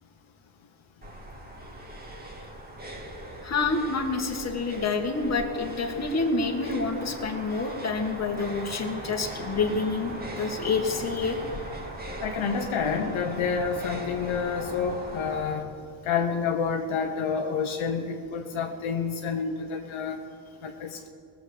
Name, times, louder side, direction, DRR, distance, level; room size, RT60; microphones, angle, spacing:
sound 1, 1.0-15.5, right 1 dB, 20° right, 1.9 m, -39 dB
voice 1, 3.4-11.4, left 4 dB, 30° left, 3 dB, 1.8 m, -28 dB
voice 2, 12.2-15.7 16.0-20.2 20.6-21.1, left 6 dB, 70° left, 3 dB, 1.2 m, -29 dB
18.5 x 7.7 x 6.8 m, 2.5 s
cardioid pair, 105°, 49 cm